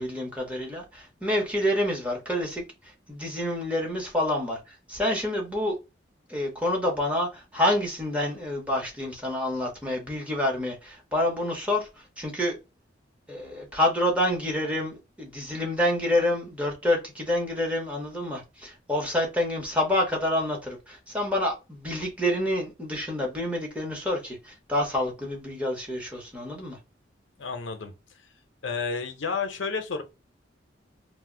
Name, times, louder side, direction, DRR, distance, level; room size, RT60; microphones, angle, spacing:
voice 1, 0.0-2.6 3.1-5.8 6.3-12.6 13.3-26.8, left 1 dB, 5° right, 0.8 m, -28 dB
voice 2, 27.4-27.9 28.6-30.0, left 5 dB, 85° left, 0.6 m, -31 dB
2.5 x 2.1 x 3.6 m
head